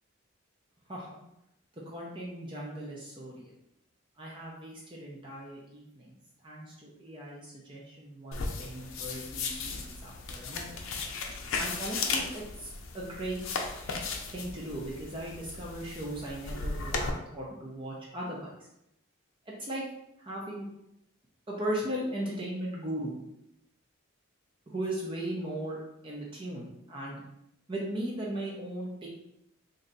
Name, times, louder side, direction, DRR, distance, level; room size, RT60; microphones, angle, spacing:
voice 1, 0.9-1.2 1.8-3.5 4.2-6.2 6.4-10.7 11.6-13.4 14.3-18.5 19.6-19.8 20.2-20.7 21.5-23.2 24.7-25.8 26.0-27.2 27.7-29.1, right 1 dB, 25° right, -4 dB, 0.6 m, -37 dB
sound 1, 8.3-17.1, left 4 dB, 70° left, 0.5 m, -36 dB
3.2 x 2.6 x 3.9 m, 0.82 s
head